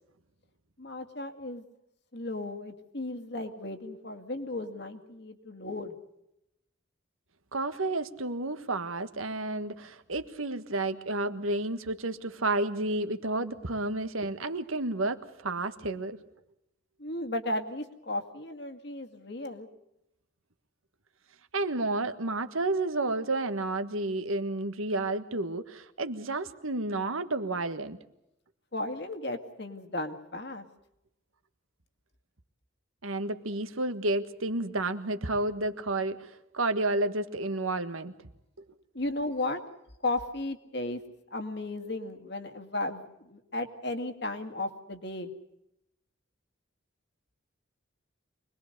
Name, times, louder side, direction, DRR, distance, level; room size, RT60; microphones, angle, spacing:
voice 1, 0.8-1.6 2.1-5.9 17.0-19.7 28.7-30.6 38.9-39.6 40.0-41.0 41.3-45.3, left 2 dB, 55° left, 6 dB, 2.1 m, -35 dB
voice 2, 7.5-16.2 21.5-28.0 33.0-38.1, right 2 dB, 90° right, 10 dB, 1.6 m, -31 dB
25.0 x 20.5 x 6.7 m, 0.83 s
head